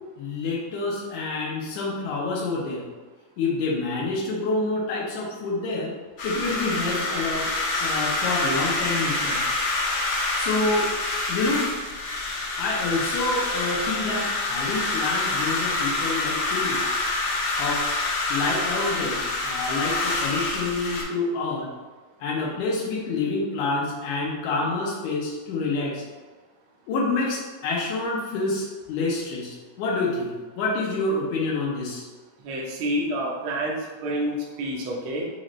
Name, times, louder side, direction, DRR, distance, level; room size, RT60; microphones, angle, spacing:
voice 1, 0.2-2.8 3.4-5.9 6.2-7.5 7.8-9.4 10.3-10.9 11.3-11.7 12.6-16.8 17.6-17.8 18.3-21.7 22.2-26.0 26.9-32.1, left 3 dB, 85° left, -5 dB, 2.4 m, -27 dB
sound 1, 6.2-21.0, left 2 dB, 70° left, 2.0 m, -27 dB
voice 2, 32.4-35.3, right 1 dB, 70° right, -2 dB, 1.3 m, -28 dB
6.2 x 2.6 x 3.2 m, 1.3 s
omnidirectional pair, 3.4 m